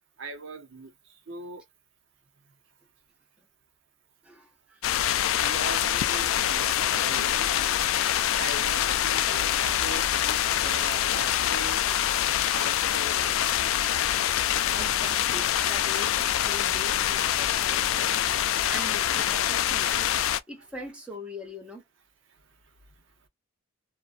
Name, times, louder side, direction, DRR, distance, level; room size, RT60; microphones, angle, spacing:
voice 1, 0.2-1.6 5.4-7.8 8.4-13.6 13.9-14.0 17.4-18.4, right 3 dB, 65° right, 0.6 m, -42 dB
voice 2, 4.2-4.8 14.7-18.2 18.7-20.1 20.5-21.8, left 1 dB, 5° right, 0.8 m, -42 dB
sound 1, 4.8-20.4, left 11 dB, 80° left, 0.3 m, -25 dB
2.5 x 2.1 x 2.4 m
head